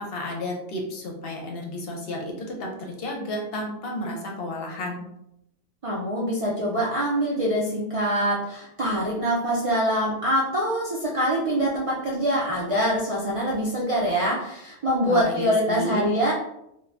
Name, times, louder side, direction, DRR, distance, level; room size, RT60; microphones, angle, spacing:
voice 1, 0.0-5.0 15.0-16.1, left 1 dB, 65° left, 1 dB, 0.8 m, -32 dB
voice 2, 5.8-16.3, equal, 50° right, -5 dB, 0.4 m, -24 dB
2.5 x 2.2 x 3.3 m, 0.79 s
omnidirectional pair, 1.2 m